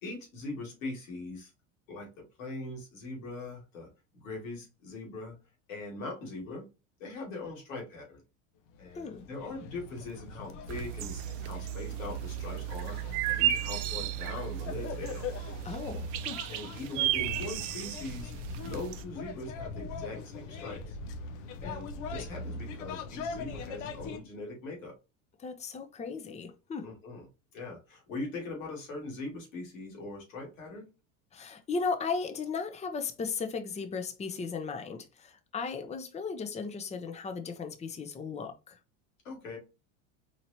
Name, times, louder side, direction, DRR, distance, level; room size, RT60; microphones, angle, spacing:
voice 1, 0.0-1.5 1.9-5.4 5.7-6.7 7.0-8.2 8.8-15.3 16.5-18.3 18.6-21.0 21.6-24.9 26.8-27.3 27.5-30.9 39.2-39.6, left 2 dB, 85° left, 2.2 m, -41 dB
sound 1, 8.7-24.2, left 3 dB, 70° left, 0.9 m, -41 dB
sound 2, 10.7-19.0, right 13 dB, 70° right, 0.6 m, -34 dB
voice 2, 15.6-16.4 25.4-26.9 31.3-38.8, left 5 dB, 15° left, 0.7 m, -36 dB
4.5 x 2.8 x 2.7 m
hypercardioid pair, 95°, 38 cm